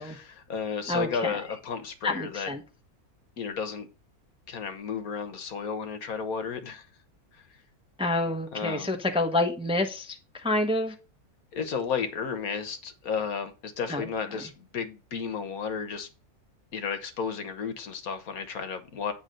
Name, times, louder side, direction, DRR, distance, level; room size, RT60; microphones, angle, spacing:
voice 1, 0.0-2.5 3.4-3.9 4.5-6.9 8.5-9.0 11.5-16.1 16.7-19.1, left 6 dB, 75° left, 1.4 m, -33 dB
voice 2, 0.9-1.4 2.0-2.6 8.0-10.2 10.4-10.9 13.9-14.1, left 2 dB, 5° right, 0.7 m, -28 dB
8.8 x 3.3 x 6.5 m
omnidirectional pair, 1.6 m